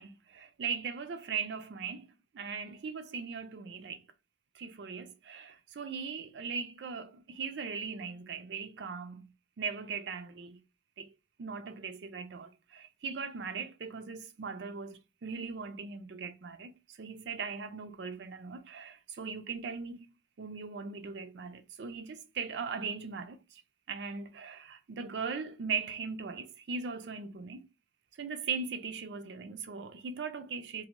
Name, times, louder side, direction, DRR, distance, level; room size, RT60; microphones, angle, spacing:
voice 1, 0.0-2.1 2.3-4.0 4.5-10.6 11.0-11.1 11.4-20.1 20.4-23.6 23.9-27.7 28.1-30.8, right 5 dB, 75° right, 0.4 m, -39 dB
2.7 x 2.1 x 2.9 m
head